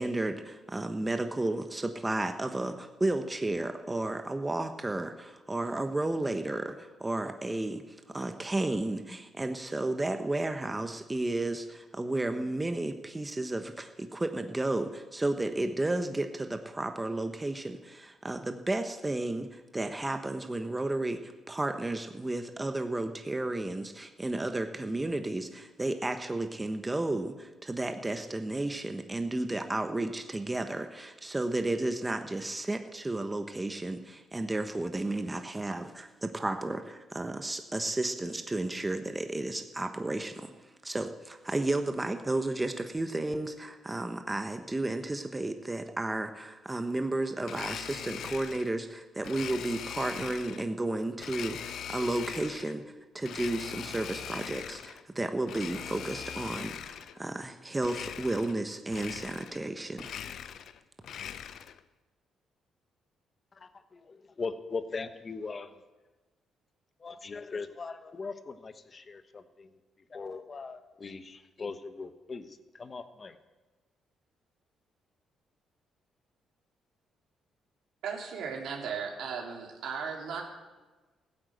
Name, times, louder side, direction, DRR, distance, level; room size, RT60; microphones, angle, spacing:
voice 1, 0.0-40.5 40.8-52.8 53.1-60.1, right 2 dB, 15° right, 7 dB, 1.0 m, -33 dB
Domestic sounds home sounds, 47.4-48.7 49.2-50.7 51.2-52.8 53.2-55.0 55.4-57.2 57.8-58.6 58.9-59.7 59.9-61.8, left 9 dB, 70° left, 0.7 m, -41 dB
voice 2, 63.5-65.8 67.0-69.8 70.1-73.4, left 4 dB, 35° left, 11 dB, 1.2 m, -40 dB
voice 3, 78.0-80.4, right 6 dB, 75° right, 0 dB, 3.2 m, -36 dB
15.5 x 9.9 x 8.0 m, 1.2 s
cardioid pair, 90°, 0 cm